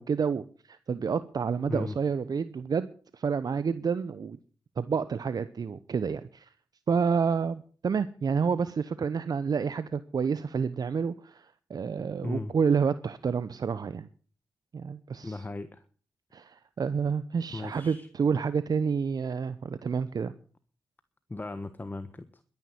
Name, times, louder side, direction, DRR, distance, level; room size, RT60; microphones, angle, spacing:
voice 1, 0.0-2.9 3.1-4.4 4.8-6.5 6.9-14.1 14.7-15.4 16.3-20.3, right 6 dB, 55° right, 0.9 m, -29 dB
voice 2, 12.2-12.5 15.2-15.8 17.5-18.1 21.3-22.3, left 2 dB, 25° left, 1.3 m, -36 dB
12.5 x 10.5 x 8.0 m
supercardioid pair, 45°, 8 cm